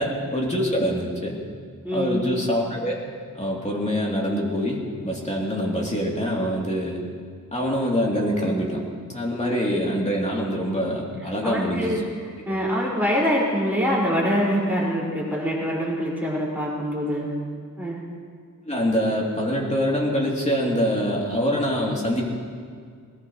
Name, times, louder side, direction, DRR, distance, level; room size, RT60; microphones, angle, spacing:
voice 1, 0.0-1.4 1.9-7.0 7.5-8.8 9.1-12.0 12.4-12.5 18.6-22.3, equal, 20° left, -3 dB, 3.1 m, -25 dB
voice 2, 1.8-2.2 11.4-17.3 17.8-18.0, equal, 5° right, -6 dB, 5.3 m, -24 dB
20.5 x 19.5 x 3.2 m, 2.1 s
wide cardioid pair, 100°, 32 cm